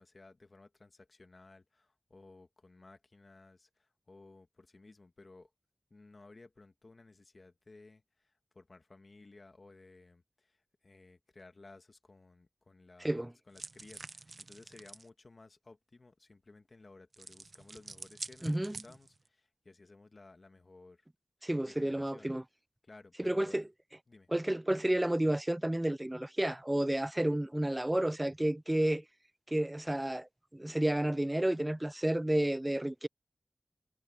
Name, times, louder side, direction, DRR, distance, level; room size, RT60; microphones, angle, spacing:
voice 1, 0.0-5.5 5.9-21.1 21.6-22.3 22.8-23.7 24.1-24.3, left 3 dB, 55° left, 2.0 m, -57 dB
voice 2, 13.0-13.3 18.4-18.8 21.4-22.4 23.2-23.6 24.3-29.0 29.5-33.1, right 1 dB, 20° right, 0.4 m, -31 dB
sound 1, 13.5-15.1 17.1-19.3, right 3 dB, 60° right, 0.8 m, -47 dB
wide cardioid pair, 55°, 0 cm